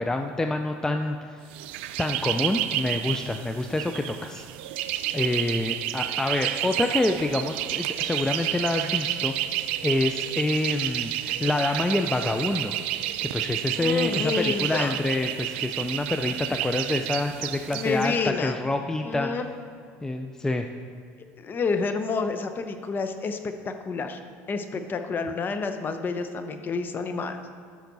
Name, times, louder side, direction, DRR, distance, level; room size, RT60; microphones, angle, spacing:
voice 1, 0.0-1.4 2.0-4.5 5.1-12.7 13.2-19.3 20.0-20.7, left 2 dB, 10° left, 6 dB, 0.4 m, -27 dB
sound 1, 1.5-18.2, right 13 dB, 90° right, 0.4 m, -30 dB
voice 2, 13.7-14.9 17.7-18.7 19.0-19.4 21.4-24.2 24.5-27.4, left 4 dB, 35° left, 8 dB, 0.8 m, -29 dB
13.0 x 5.8 x 4.0 m, 2.1 s
supercardioid pair, 105°, 6 cm